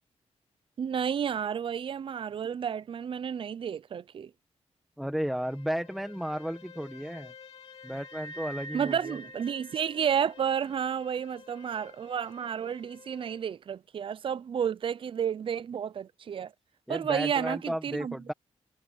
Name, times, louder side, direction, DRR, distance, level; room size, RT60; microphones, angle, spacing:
voice 1, 0.8-4.3 8.7-16.5 16.9-18.1, right 8 dB, 50° right, 0.5 m, -31 dB
voice 2, 5.0-7.3 7.8-9.2 16.9-18.3, equal, ahead, 1.3 m, -33 dB
Bowed string instrument, 5.2-13.5, left 7 dB, 55° left, 5.1 m, -53 dB
sound 1, 7.8-10.4, right 1 dB, 70° right, 2.1 m, -45 dB
wide cardioid pair, 135°, 12 cm